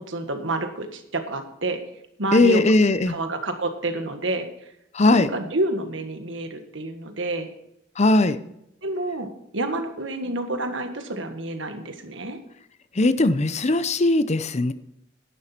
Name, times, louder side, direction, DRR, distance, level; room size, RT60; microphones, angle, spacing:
voice 1, 0.1-1.8 2.2-2.6 3.1-4.5 5.1-7.5 8.8-12.4, right 2 dB, 75° right, 7 dB, 1.6 m, -29 dB
voice 2, 2.3-3.2 4.9-5.3 8.0-8.4 12.9-14.7, left 2 dB, 35° left, 13 dB, 0.7 m, -19 dB
11.0 x 11.0 x 4.4 m, 0.79 s
head